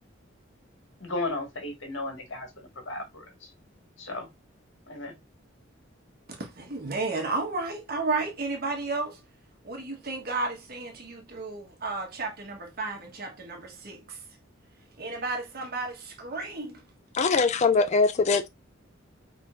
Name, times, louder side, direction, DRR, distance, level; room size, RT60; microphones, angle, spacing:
voice 1, 1.0-3.5 4.0-4.3 4.9-5.2, left 2 dB, 75° left, 1.8 m, -35 dB
voice 2, 6.4-9.2 9.6-14.2 15.0-16.8, right 3 dB, 50° right, 1.3 m, -33 dB
voice 3, 17.1-18.5, left 4 dB, 35° left, 0.4 m, -22 dB
5.7 x 3.6 x 2.5 m
head